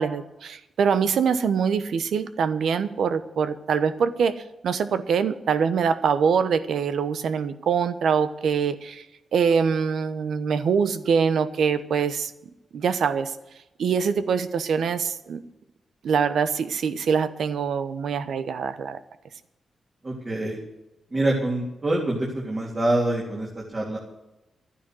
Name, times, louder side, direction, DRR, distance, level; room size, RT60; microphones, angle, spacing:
voice 1, 0.0-4.3 4.6-9.1 9.3-12.3 12.7-13.3 13.8-15.4 16.0-19.0, right 6 dB, 80° right, 12 dB, 1.1 m, -24 dB
voice 2, 20.0-20.6 21.1-24.0, right 1 dB, 35° right, -3 dB, 3.5 m, -25 dB
12.5 x 10.0 x 7.8 m, 0.95 s
cardioid pair, 75°, 0 cm